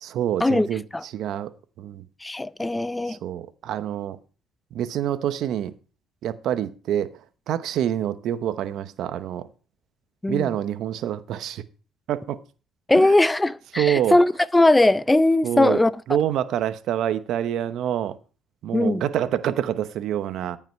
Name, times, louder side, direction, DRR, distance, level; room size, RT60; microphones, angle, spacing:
voice 1, 0.0-1.5 1.8-2.0 3.1-4.2 4.7-5.7 6.2-7.1 7.5-9.5 10.3-11.6 12.1-12.4 12.9-13.1 13.8-14.2 15.4-15.8 16.1-18.2 18.6-20.6, right 10 dB, 65° right, 0.8 m, -26 dB
voice 2, 2.2-3.2 10.2-10.5 12.9-15.9 18.7-19.0, left 2 dB, 10° left, 0.4 m, -19 dB
14.0 x 5.7 x 4.5 m
cardioid pair, 90°, 0 cm